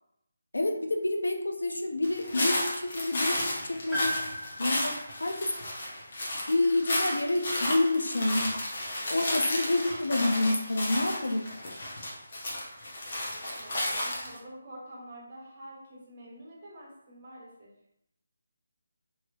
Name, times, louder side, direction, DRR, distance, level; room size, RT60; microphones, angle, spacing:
voice 1, 0.5-4.1 4.6-5.5 6.5-8.5 9.1-11.5, left 2 dB, 75° left, 4 dB, 0.5 m, -28 dB
sound 1, 2.0-14.4, left 1 dB, 45° left, 0.8 m, -33 dB
Piano, 3.9-8.1 9.3-9.4, left 1 dB, ahead, 1.1 m, -39 dB
voice 2, 13.2-17.7, right 1 dB, 40° right, -3 dB, 0.9 m, -48 dB
3.1 x 2.9 x 2.4 m, 0.77 s
figure-of-eight pair, 155°, 0 cm